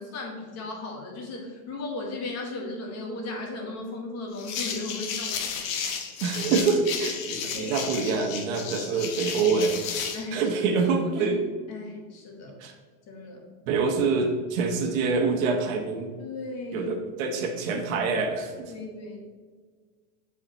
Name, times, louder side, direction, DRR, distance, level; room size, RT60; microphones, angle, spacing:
voice 1, 0.0-5.7 7.5-7.8 10.1-10.4 10.7-10.8 11.2-11.4 11.7-12.6 13.1-13.4 16.2-16.9 18.7-19.2, left 2 dB, 35° left, 0 dB, 1.4 m, -36 dB
sound 1, 4.4-10.3, left 7 dB, 65° left, 1.1 m, -33 dB
voice 2, 6.2-9.7 10.3-11.4 12.6-12.7 13.7-16.1 16.7-18.7, right 4 dB, 65° right, 3 dB, 1.2 m, -26 dB
7.1 x 4.9 x 3.0 m, 1.5 s
supercardioid pair, 145°, 44 cm